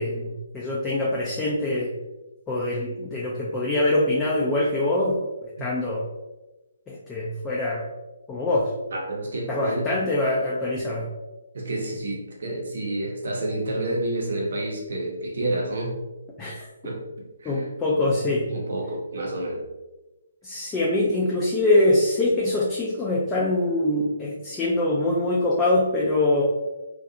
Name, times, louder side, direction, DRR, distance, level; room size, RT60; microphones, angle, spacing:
voice 1, 0.0-1.9 2.5-5.2 5.4-6.1 6.9-7.9 8.3-8.7 9.5-11.1 16.4-16.7 17.4-18.5 20.4-26.4, left 2 dB, 10° left, -5 dB, 0.3 m, -24 dB
voice 2, 8.9-9.8 11.5-16.0 16.8-17.0 17.4-17.5 17.9-18.0 18.5-19.6, right 1 dB, 55° right, -1 dB, 0.7 m, -29 dB
2.5 x 2.3 x 2.5 m, 1.1 s
figure-of-eight pair, 135°, 0 cm